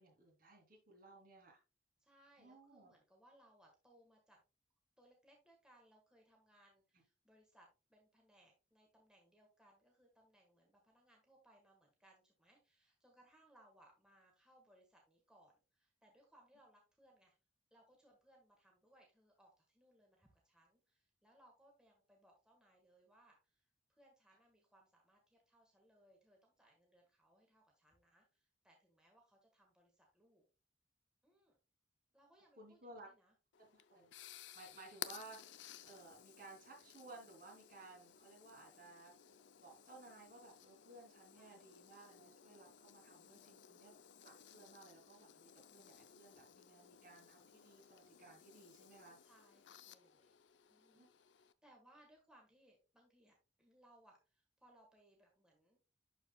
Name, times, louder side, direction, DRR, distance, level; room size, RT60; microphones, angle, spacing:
voice 1, 0.0-1.6 2.4-2.9 32.6-33.1 33.6-39.3 39.6-44.0 44.2-49.2 50.9-51.1, right 2 dB, 50° right, -1 dB, 3.0 m, -58 dB
voice 2, 2.0-4.4 5.0-17.3 17.7-30.4 31.2-31.6 32.1-33.3 41.4-41.6 43.1-43.6 49.2-50.4 50.7-55.8, right 1 dB, 5° right, 0 dB, 1.6 m, -69 dB
sound 1, 33.5-51.5, left 10 dB, 70° left, 0.5 m, -57 dB
11.5 x 4.7 x 2.3 m, 0.29 s
head